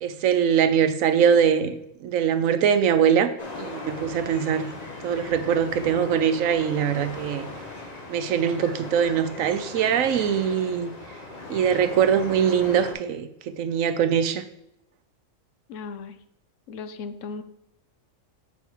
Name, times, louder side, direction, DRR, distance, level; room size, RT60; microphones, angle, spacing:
voice 1, 0.0-4.7 5.0-7.5 8.1-10.9 11.5-14.4, right 8 dB, 85° right, 11 dB, 1.1 m, -22 dB
sound 1, 3.4-12.9, left 2 dB, 35° left, 1.1 m, -38 dB
voice 2, 15.7-16.2 16.7-17.4, left 4 dB, 70° left, 10 dB, 1.0 m, -36 dB
7.4 x 5.3 x 4.5 m, 0.81 s
omnidirectional pair, 1.4 m